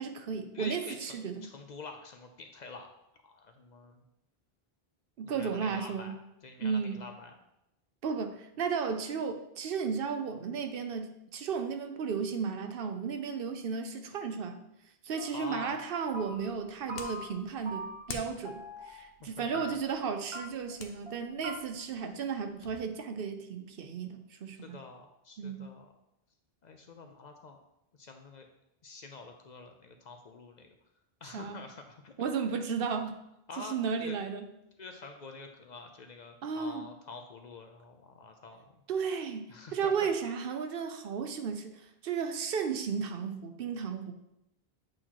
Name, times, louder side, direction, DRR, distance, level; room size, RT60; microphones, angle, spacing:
voice 1, 0.0-1.5 5.2-6.2 6.6-7.0 8.0-14.7 15.0-24.8 25.4-25.7 31.3-31.6 32.2-33.2 33.6-34.5 36.4-36.9 38.9-44.1, right 6 dB, 70° right, 7 dB, 0.8 m, -34 dB
voice 2, 0.5-2.9 3.2-4.0 5.2-6.1 6.4-7.3 15.3-15.8 19.2-19.6 24.6-25.9 26.6-27.6 28.0-28.5 28.8-30.7 31.2-32.1 33.5-34.2 34.8-38.7 39.5-40.1, left 4 dB, 55° left, 5 dB, 0.6 m, -47 dB
sound 1, 15.2-15.5 15.8-16.6 16.9-17.4 17.7-18.2 18.5-19.0 19.5-20.0 20.3-20.4 20.7-20.8 21.1-21.2 21.4-21.5, equal, 30° right, 0.9 m, -42 dB
sound 2, 16.1-22.8, left 5 dB, 75° left, 0.9 m, -50 dB
7.8 x 4.3 x 2.9 m, 0.87 s
omnidirectional pair, 1.0 m